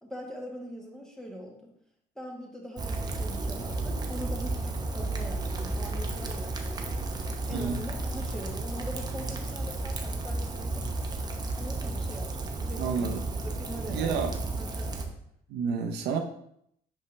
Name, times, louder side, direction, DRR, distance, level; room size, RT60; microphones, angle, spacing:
voice 1, 0.0-1.7 2.1-7.0 7.5-11.0 11.6-15.1, equal, 5° left, 0 dB, 1.4 m, -42 dB
Rain, 2.8-15.1, right 2 dB, 25° right, 0.8 m, -33 dB
voice 2, 12.8-13.2 13.9-14.3 15.5-16.2, right 6 dB, 80° right, 5 dB, 0.7 m, -29 dB
5.6 x 5.1 x 3.2 m, 0.71 s
cardioid pair, 110°, 17 cm